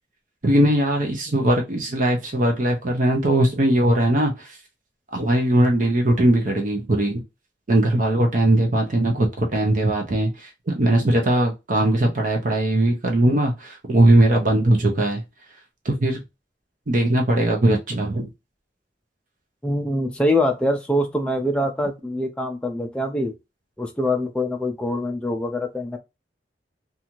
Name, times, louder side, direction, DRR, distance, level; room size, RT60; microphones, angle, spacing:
voice 1, 0.4-4.5 5.1-7.2 7.7-15.2 15.8-16.2 16.9-18.3, right 1 dB, 50° right, 0.6 m, -20 dB
voice 2, 19.6-23.3 23.8-26.0, left 1 dB, 5° left, 0.4 m, -24 dB
2.7 x 2.4 x 2.9 m
head